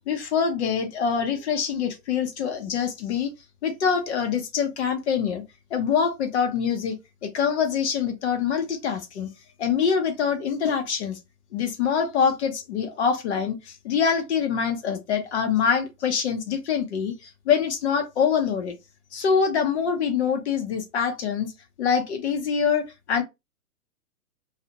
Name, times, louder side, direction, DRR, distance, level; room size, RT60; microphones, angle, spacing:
voice 1, 0.1-3.3 3.6-5.4 5.7-7.0 7.2-9.3 9.6-11.2 11.5-18.8 19.1-21.5 21.8-23.2, left 7 dB, 45° left, 0.8 m, -25 dB
2.7 x 2.4 x 2.9 m
hypercardioid pair, 150°, 46 cm